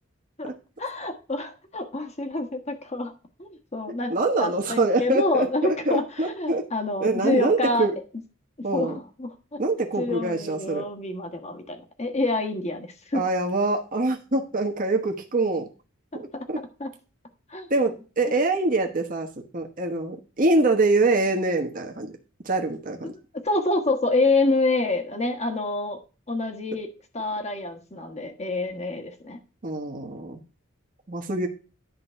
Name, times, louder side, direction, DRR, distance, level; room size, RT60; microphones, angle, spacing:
voice 1, 0.8-3.1 3.4-4.1 4.4-7.9 8.6-9.6 10.0-13.2 16.8-16.9 17.5-17.7 23.0-23.2 23.4-26.0 26.3-26.9 27.1-29.4, left 2 dB, 35° left, 4 dB, 1.3 m, -27 dB
voice 2, 4.1-6.6 7.0-7.9 8.6-9.0 9.6-10.8 13.1-15.7 16.1-16.6 17.7-19.3 19.5-22.1 22.4-23.1 29.6-30.4 31.1-31.5, right 2 dB, 40° right, 3 dB, 1.2 m, -24 dB
10.5 x 3.8 x 5.6 m, 0.35 s
head